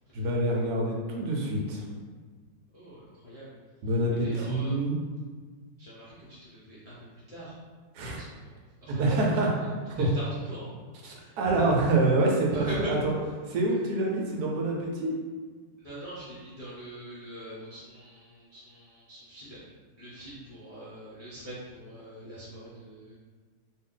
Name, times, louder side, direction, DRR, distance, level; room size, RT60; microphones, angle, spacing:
voice 1, 0.1-1.8 3.8-5.0 7.9-8.2 8.9-10.1 11.0-13.1 13.5-15.1, right 2 dB, 70° right, -1 dB, 1.1 m, -26 dB
voice 2, 2.7-3.6 4.2-4.8 5.8-7.5 8.1-8.5 8.8-9.1 9.5-9.6 9.9-10.7 11.1-11.6 12.5-12.9 15.8-19.6 20.0-23.1, right 1 dB, 40° left, -11 dB, 0.5 m, -42 dB
2.7 x 2.5 x 3.7 m, 1.5 s
omnidirectional pair, 1.9 m